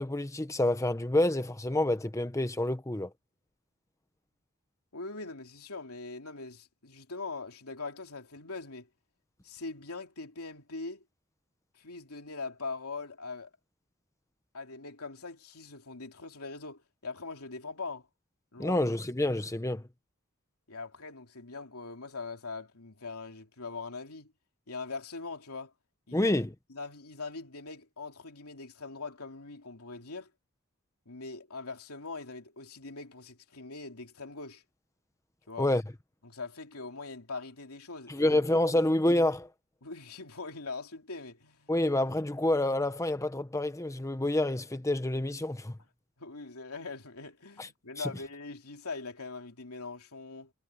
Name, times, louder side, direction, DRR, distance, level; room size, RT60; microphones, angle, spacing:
voice 1, 0.0-3.1 18.6-19.8 26.1-26.5 35.6-35.8 38.1-39.5 41.7-45.8 47.6-47.7 48.0-48.1, left 1 dB, 15° left, 0.9 m, -28 dB
voice 2, 4.9-8.9 9.4-11.0 11.7-13.5 14.5-18.1 18.5-18.8 20.7-24.3 24.7-25.7 26.1-26.3 26.7-30.3 31.1-34.6 35.5-35.7 36.2-38.3 38.7-38.9 39.8-41.7 46.2-50.5, left 3 dB, 80° left, 3.0 m, -42 dB
head